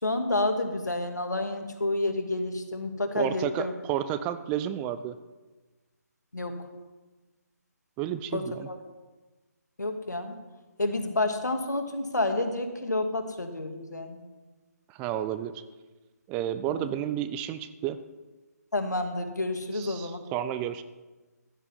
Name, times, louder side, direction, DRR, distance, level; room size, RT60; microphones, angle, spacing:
voice 1, 0.0-3.7 6.3-6.5 8.3-8.8 9.8-10.4 10.8-14.2 16.7-16.9 18.7-20.2, left 2 dB, 80° left, 5 dB, 2.2 m, -29 dB
voice 2, 3.2-5.2 8.0-8.7 14.9-15.6 16.3-18.0 19.7-20.8, right 11 dB, 15° right, 11 dB, 0.4 m, -31 dB
15.5 x 10.5 x 5.4 m, 1.2 s
figure-of-eight pair, 145°, 9 cm